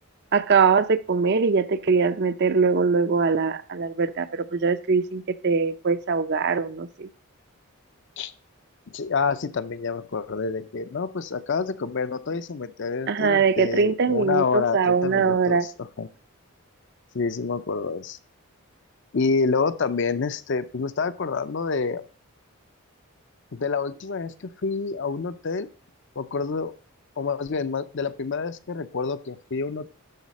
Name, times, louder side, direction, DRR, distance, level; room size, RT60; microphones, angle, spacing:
voice 1, 0.3-7.1 13.1-15.7, right 5 dB, 50° right, 13 dB, 0.5 m, -22 dB
voice 2, 8.9-16.1 17.1-18.2 19.1-22.0 23.5-25.7 26.2-26.7 27.2-29.9, left 4 dB, 55° left, 12 dB, 0.5 m, -28 dB
12.5 x 4.1 x 4.1 m, 0.39 s
head